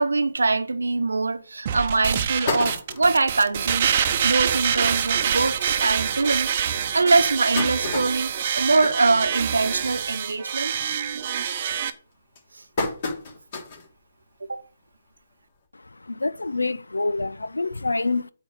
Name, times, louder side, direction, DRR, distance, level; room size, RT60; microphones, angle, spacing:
voice 1, 0.0-3.9 4.2-6.6 6.9-10.7 14.5-14.6, right 3 dB, 75° right, 0.9 m, -23 dB
sound 1, 1.3-1.4 1.9-2.0 2.2-3.3 3.8-3.9 4.2-4.3 4.6-4.8 5.5-5.6 6.2-6.3 7.0-9.8 10.2-10.5 10.9-11.3 11.9-13.9 14.4-14.5 15.6-15.7, left 3 dB, 40° left, 3.2 m, -31 dB
sound 2, 1.7-11.9, right 8 dB, 40° right, 0.9 m, -26 dB
voice 2, 15.7-18.3, left 3 dB, 80° left, 0.6 m, -27 dB
8.6 x 4.5 x 6.7 m
figure-of-eight pair, 145°, 0 cm